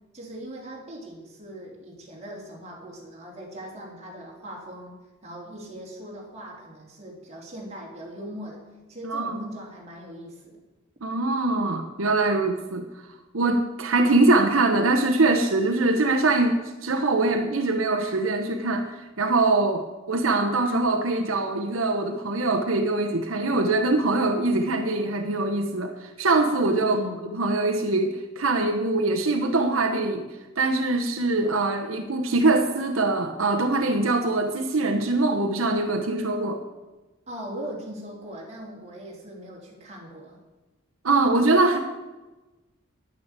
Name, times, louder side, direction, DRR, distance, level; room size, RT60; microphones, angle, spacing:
voice 1, 0.1-5.0 5.2-8.6 8.9-10.6 26.8-27.3 37.3-40.4, equal, 35° right, -2 dB, 3.4 m, -39 dB
voice 2, 9.0-9.4 11.0-12.9 13.3-27.0 27.4-30.3 30.6-36.6 41.0-41.8, right 2 dB, 85° right, 5 dB, 1.0 m, -23 dB
10.5 x 9.2 x 8.1 m, 1.1 s
head